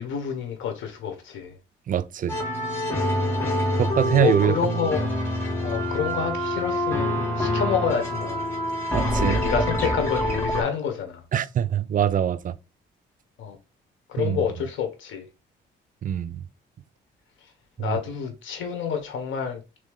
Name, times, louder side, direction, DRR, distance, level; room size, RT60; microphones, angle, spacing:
voice 1, 0.0-1.6 3.2-3.5 4.1-5.1 5.6-8.5 9.1-11.2 13.4-13.6 14.1-15.2 17.8-19.6, left 7 dB, 80° left, 1.2 m, -28 dB
voice 2, 1.9-2.4 3.7-4.9 8.9-9.4 11.3-12.5 14.2-14.4 16.0-16.4 17.8-18.0, right 9 dB, 45° right, 0.4 m, -24 dB
sound 1, 2.3-10.6, left 1 dB, 10° left, 2.0 m, -26 dB
3.4 x 3.1 x 3.5 m
cardioid pair, 90°, 20 cm